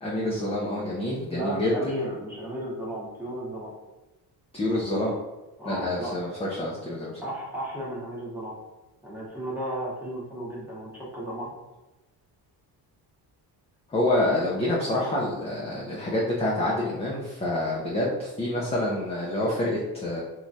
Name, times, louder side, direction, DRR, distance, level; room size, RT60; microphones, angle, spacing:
voice 1, 0.0-1.7 4.5-5.2 5.7-7.1 13.9-20.2, left 1 dB, 15° left, -5 dB, 0.4 m, -27 dB
voice 2, 1.3-3.7 5.6-6.1 7.2-8.6 9.0-11.5, equal, 5° right, -6 dB, 0.9 m, -34 dB
3.1 x 2.3 x 2.6 m, 1.0 s
cardioid pair, 130°, 41 cm